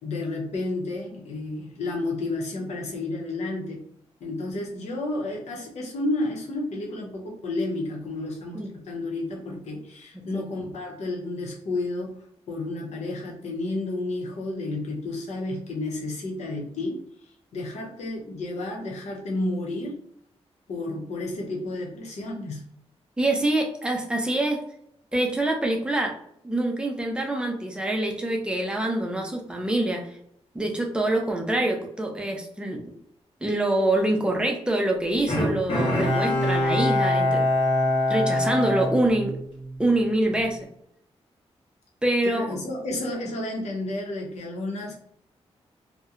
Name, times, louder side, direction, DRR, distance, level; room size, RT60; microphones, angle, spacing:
voice 1, 0.0-3.8 4.2-17.0 17.5-20.0 20.7-22.7 42.2-44.9, left 2 dB, 90° left, 0 dB, 0.7 m, -31 dB
voice 2, 23.2-24.6 25.1-26.1 26.4-30.0 30.5-32.8 33.4-37.4 38.1-39.4 39.8-40.6 42.0-42.5, right 1 dB, 10° right, 1 dB, 0.4 m, -25 dB
Bowed string instrument, 35.3-39.8 40.2-40.3, left 1 dB, 55° left, 0.9 m, -24 dB
2.7 x 2.1 x 2.4 m, 0.71 s
wide cardioid pair, 150°, 11 cm